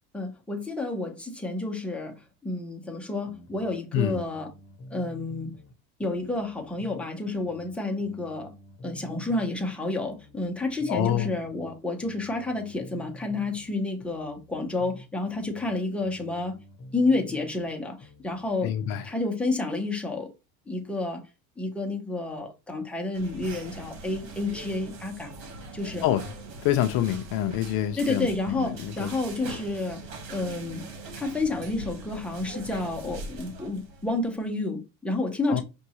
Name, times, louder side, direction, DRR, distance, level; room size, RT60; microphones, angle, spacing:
voice 1, 0.1-4.5 4.9-5.5 6.0-8.5 8.8-16.6 16.9-18.7 19.0-20.3 20.7-21.3 21.6-25.3 25.7-26.0 28.0-30.9 31.1-35.6, left 2 dB, 5° left, 1.0 m, -30 dB
sound 1, 3.3-5.7 6.0-9.7 10.0-13.7 14.0-17.7 18.0-19.1, equal, 30° left, 1.2 m, -48 dB
voice 2, 10.9-11.3 18.6-19.1 26.0-26.3 26.6-29.1 35.5-35.6, left 12 dB, 55° left, 0.6 m, -27 dB
sound 2, 23.1-34.3, right 2 dB, 70° right, 1.5 m, -42 dB
5.3 x 2.7 x 3.0 m
supercardioid pair, 115°, 41 cm